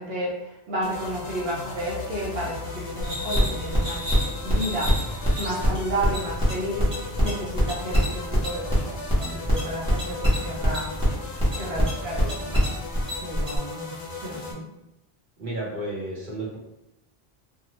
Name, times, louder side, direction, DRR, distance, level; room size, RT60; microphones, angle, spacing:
voice 1, 0.0-4.0 4.4-4.9 5.4-6.9 7.2-10.9 11.6-12.5 13.2-13.9 14.2-14.6, right 1 dB, 75° right, -5 dB, 1.1 m, -32 dB
sound 1, 0.8-14.5, left 2 dB, 90° left, 0.9 m, -37 dB
sound 2, 3.0-13.6, equal, 5° right, 0.8 m, -24 dB
voice 2, 15.4-16.6, right 1 dB, 50° right, -6 dB, 1.0 m, -32 dB
2.7 x 2.2 x 2.9 m, 0.93 s
omnidirectional pair, 1.0 m